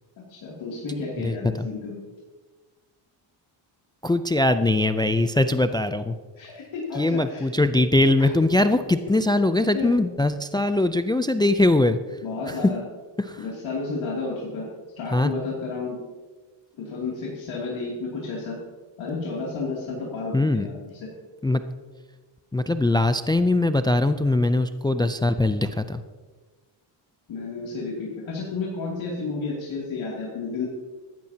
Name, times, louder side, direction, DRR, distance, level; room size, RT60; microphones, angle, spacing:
voice 1, 0.3-2.0 6.4-7.5 8.2-8.3 9.7-9.9 12.2-12.8 13.4-14.7 15.0-16.0 16.8-18.6 19.0-21.1 27.3-30.7, left 4 dB, 65° left, -5 dB, 2.8 m, -31 dB
voice 2, 1.2-1.7 4.0-6.2 7.0-12.0 12.5-12.7 13.2-13.4 15.1-15.3 20.3-20.7 21.4-21.6 22.5-26.0, left 2 dB, 10° left, 10 dB, 0.4 m, -21 dB
14.5 x 12.0 x 2.8 m, 1.4 s
cardioid pair, 85°, 50 cm